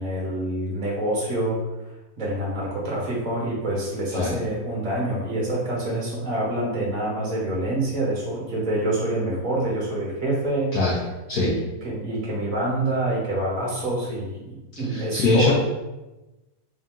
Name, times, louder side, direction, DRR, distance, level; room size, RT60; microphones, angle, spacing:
voice 1, 0.0-1.6 2.2-10.8 11.3-11.6 11.8-15.5, right 1 dB, 25° right, -5 dB, 1.1 m, -26 dB
voice 2, 14.9-15.5, left 3 dB, 70° left, -5 dB, 1.0 m, -21 dB
3.6 x 2.7 x 3.6 m, 1.1 s
omnidirectional pair, 2.2 m